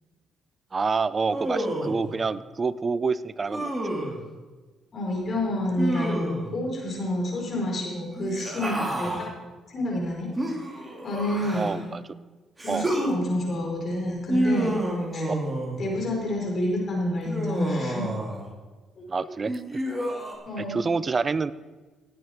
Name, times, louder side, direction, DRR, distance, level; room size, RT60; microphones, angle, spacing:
voice 1, 0.7-3.7 11.5-12.0 12.7-12.9 15.3-15.4 19.1-19.6 20.6-21.5, right 4 dB, 35° right, 17 dB, 0.6 m, -27 dB
Human voice, 1.3-2.1 3.5-4.2 5.8-6.5 8.1-9.3 10.4-11.9 12.6-13.1 14.3-15.8 17.3-18.5 19.5-20.3, right 1 dB, 20° right, 3.0 m, -29 dB
voice 2, 4.9-9.1 9.7-10.3 11.0-11.8 12.6-14.8 15.1-15.3 15.8-18.1 19.0-19.1 20.4-20.8, left 1 dB, 50° left, -1 dB, 4.8 m, -28 dB
17.5 x 8.6 x 4.7 m, 1.3 s
supercardioid pair, 70°, 0 cm